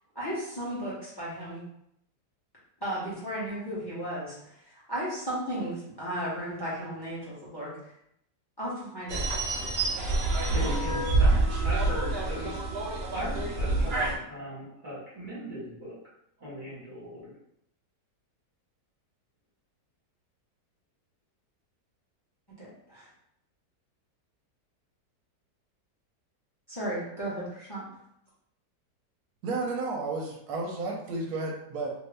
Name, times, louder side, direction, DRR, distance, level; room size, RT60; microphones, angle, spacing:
voice 1, 0.1-1.6 2.8-7.9 8.6-9.5 22.6-23.1 26.7-27.9, right 1 dB, 20° left, -8 dB, 0.8 m, -35 dB
sound 1, 9.1-14.1, right 2 dB, 85° right, 0.5 m, -27 dB
voice 2, 10.5-12.6 12.8-16.0 16.4-17.3, equal, 35° right, -8 dB, 1.1 m, -38 dB
voice 3, 29.4-31.9, right 3 dB, 70° right, 0 dB, 1.0 m, -32 dB
2.7 x 2.6 x 3.3 m, 0.75 s
omnidirectional pair, 1.8 m